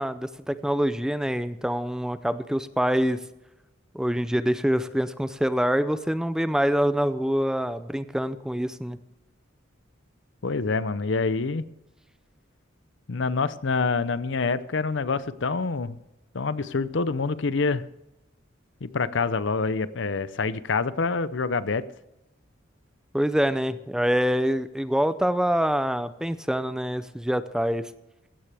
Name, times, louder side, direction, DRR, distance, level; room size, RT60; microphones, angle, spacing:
voice 1, 0.0-3.2 3.9-9.0 23.1-27.9, equal, 5° right, 13 dB, 0.5 m, -25 dB
voice 2, 10.4-11.6 13.1-16.0 16.3-17.8 18.8-21.8, left 4 dB, 65° left, 16 dB, 0.7 m, -26 dB
16.5 x 13.5 x 3.4 m, 0.92 s
head